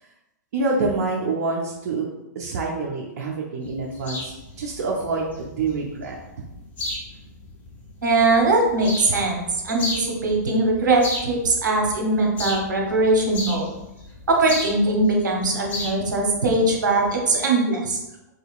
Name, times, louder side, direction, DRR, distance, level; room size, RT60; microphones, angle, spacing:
voice 1, 0.5-2.1 2.3-4.3 4.6-6.2, right 3 dB, 60° right, -2 dB, 0.6 m, -26 dB
sound 1, 3.6-17.2, left 2 dB, 15° left, 0.6 m, -36 dB
voice 2, 8.0-13.7 14.3-18.0, right 2 dB, 90° right, 0 dB, 0.8 m, -21 dB
3.6 x 2.8 x 2.4 m, 0.95 s
hypercardioid pair, 125°, 10 cm